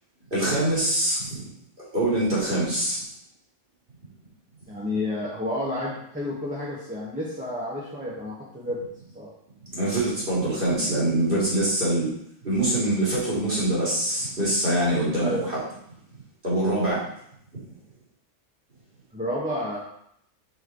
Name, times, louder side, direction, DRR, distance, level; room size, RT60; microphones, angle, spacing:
voice 1, 0.3-1.3 1.9-3.0 9.7-12.1 12.4-15.6 16.4-17.0, right 1 dB, 40° right, -9 dB, 3.4 m, -24 dB
voice 2, 4.7-8.8 9.1-9.3 15.2-15.5 19.1-19.8, left 1 dB, 5° right, -6 dB, 1.2 m, -30 dB
6.1 x 4.8 x 4.8 m, 0.73 s
omnidirectional pair, 1.3 m